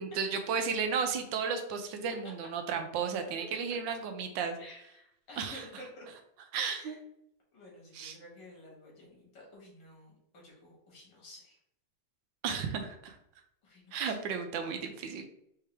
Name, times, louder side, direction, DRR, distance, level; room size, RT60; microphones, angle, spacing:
voice 1, 0.0-4.6 5.4-5.8 6.5-7.0 7.9-8.2 12.4-13.2 13.9-15.3, right 6 dB, 90° right, 6 dB, 1.4 m, -34 dB
voice 2, 4.6-6.1 6.6-7.0 7.5-11.6 12.5-12.6 13.6-14.2, left 1 dB, 80° left, -3 dB, 2.3 m, -52 dB
4.6 x 3.4 x 3.3 m, 0.76 s
omnidirectional pair, 1.9 m